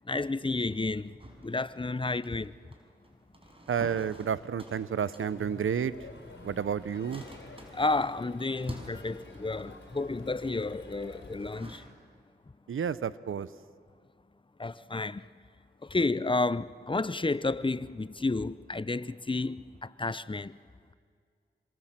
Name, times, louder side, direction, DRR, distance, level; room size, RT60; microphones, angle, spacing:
voice 1, 0.1-1.1 1.4-2.5 7.7-11.8 14.6-15.2 15.8-20.6, left 3 dB, 25° left, 0.7 m, -31 dB
sound 1, 1.2-11.8, equal, 25° right, 5.4 m, -49 dB
voice 2, 3.7-6.1 6.4-7.2 12.7-13.5, right 7 dB, 85° right, 0.7 m, -31 dB
Crowd, 4.9-11.7, left 3 dB, 65° left, 4.2 m, -51 dB
26.0 x 25.0 x 7.5 m
cardioid pair, 45°, 21 cm